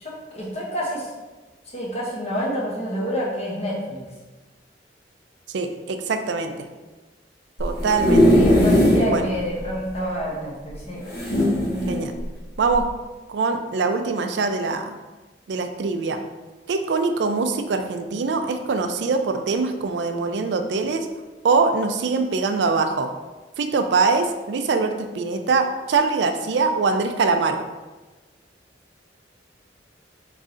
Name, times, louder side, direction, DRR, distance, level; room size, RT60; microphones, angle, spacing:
voice 1, 0.0-1.1 1.7-4.0 8.3-11.0, equal, 35° left, -4 dB, 1.1 m, -28 dB
voice 2, 5.5-6.7 7.6-8.3 9.0-9.3 11.9-12.1 12.6-12.9 13.3-15.0 15.5-16.2 16.7-21.1 21.4-23.1 23.6-27.6, right 4 dB, 70° right, 7 dB, 0.4 m, -23 dB
sound 1, 7.6-9.1 9.6-9.7 9.9-10.0 11.1-12.0 12.7-12.9, equal, 60° left, 1.2 m, -18 dB
3.7 x 3.1 x 3.8 m, 1.2 s
head